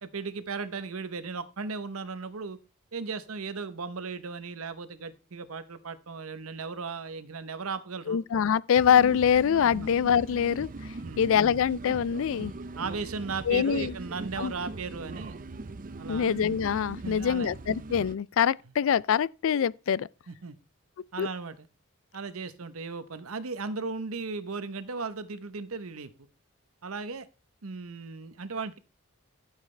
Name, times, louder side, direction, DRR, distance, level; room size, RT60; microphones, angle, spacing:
voice 1, 0.0-2.6 2.9-8.2 9.7-9.9 11.0-11.2 12.7-15.4 16.0-16.3 17.0-17.6 20.3-20.6 21.1-21.7 22.1-26.1 26.8-27.3 27.6-28.8, right 4 dB, 80° right, 0.9 m, -36 dB
voice 2, 8.1-12.5 13.5-14.0 14.4-14.5 16.1-20.1 21.2-21.3, left 8 dB, 65° left, 0.4 m, -24 dB
sound 1, 8.7-18.2, right 2 dB, 40° right, 0.6 m, -40 dB
13.5 x 7.4 x 3.3 m
head